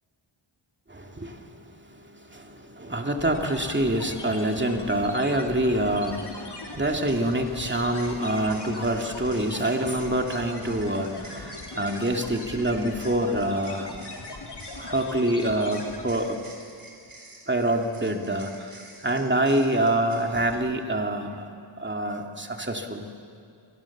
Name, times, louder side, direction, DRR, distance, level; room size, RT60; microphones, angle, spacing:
voice 1, 0.9-14.1 14.7-16.4 17.5-21.5 21.8-23.1, right 1 dB, 25° right, 3 dB, 2.5 m, -26 dB
sound 1, 3.2-16.3, left 3 dB, 55° left, 3.5 m, -40 dB
sound 2, 6.0-6.1 6.9-20.5, right 2 dB, 45° right, 5.3 m, -49 dB
28.0 x 20.5 x 7.3 m, 2.5 s
wide cardioid pair, 75°, 47 cm